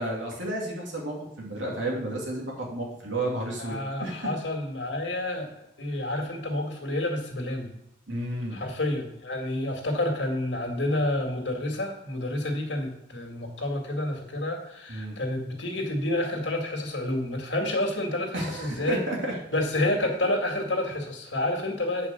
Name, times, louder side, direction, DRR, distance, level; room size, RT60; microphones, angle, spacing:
voice 1, 0.0-4.3 8.1-8.6 14.9-15.2 18.3-19.3, right 1 dB, 85° right, -1 dB, 2.7 m, -32 dB
voice 2, 3.6-7.7 8.5-19.0 19.5-22.1, left 1 dB, 70° left, 2 dB, 2.1 m, -29 dB
8.5 x 5.1 x 6.6 m, 0.77 s
head